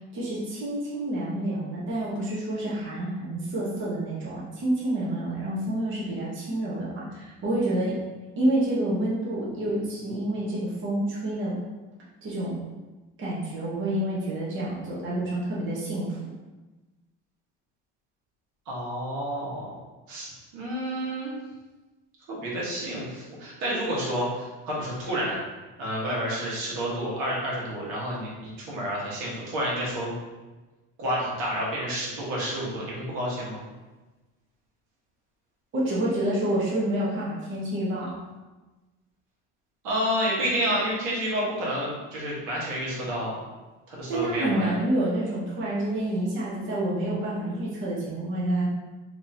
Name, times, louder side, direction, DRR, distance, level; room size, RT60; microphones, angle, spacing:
voice 1, 0.1-8.0 8.4-11.6 12.2-12.6 13.2-16.2 35.7-38.1 44.1-48.7, right 1 dB, 40° right, -7 dB, 1.1 m, -28 dB
voice 2, 18.7-19.8 20.1-21.4 22.3-25.4 25.8-30.1 31.0-33.6 39.8-43.3 43.9-44.7, equal, 75° right, -5 dB, 1.4 m, -30 dB
3.6 x 3.0 x 2.7 m, 1.2 s
cardioid pair, 130°, 30 cm